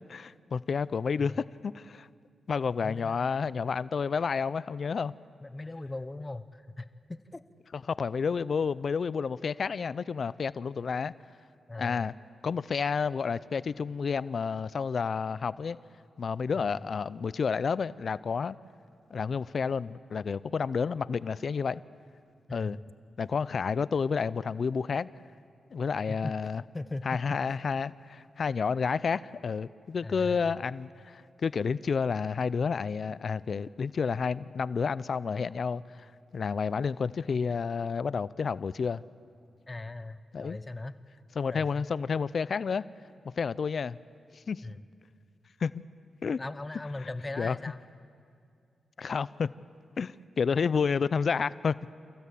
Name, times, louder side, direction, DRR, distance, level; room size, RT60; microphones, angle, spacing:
voice 1, 0.1-2.1 2.5-5.1 7.9-11.1 11.8-12.1 12.4-15.8 16.2-18.6 19.1-21.8 22.5-22.8 23.2-25.1 25.7-26.6 27.1-39.0 40.3-40.6 41.4-42.9 43.4-44.0 44.3-44.6 45.6-45.8 46.2-46.4 47.4-47.6 49.0-49.5 50.0-51.8, left 5 dB, 60° left, 18 dB, 0.5 m, -30 dB
voice 2, 2.8-3.3 5.4-7.4 11.7-12.1 16.6-16.8 22.5-22.9 26.1-26.3 26.7-27.2 27.5-27.6 30.0-30.5 39.7-41.0 41.5-41.8 44.6-44.8 46.4-47.8, left 2 dB, 25° left, 12 dB, 0.9 m, -39 dB
28.5 x 15.5 x 8.5 m, 2.4 s
cardioid pair, 65°, 0 cm